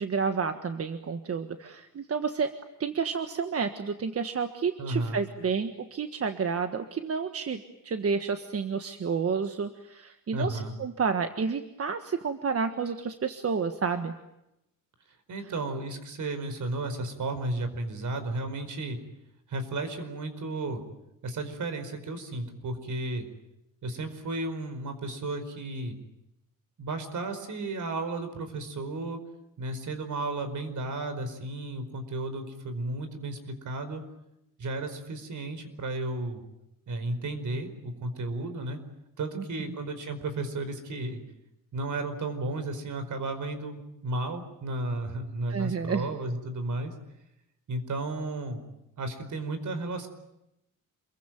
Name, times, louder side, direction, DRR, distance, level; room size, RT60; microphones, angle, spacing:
voice 1, 0.0-2.5 2.8-14.2 45.5-46.1, right 5 dB, 45° right, 7 dB, 1.6 m, -30 dB
voice 2, 4.8-5.2 10.3-10.7 15.1-19.0 19.5-20.8 21.2-23.2 23.8-26.0 26.8-29.2 29.6-34.0 34.6-36.4 36.9-38.8 39.2-41.2 41.7-46.9 47.7-48.6 49.0-50.1, right 2 dB, 65° right, 9 dB, 4.9 m, -33 dB
28.0 x 23.0 x 9.1 m, 0.87 s
wide cardioid pair, 145°, 33 cm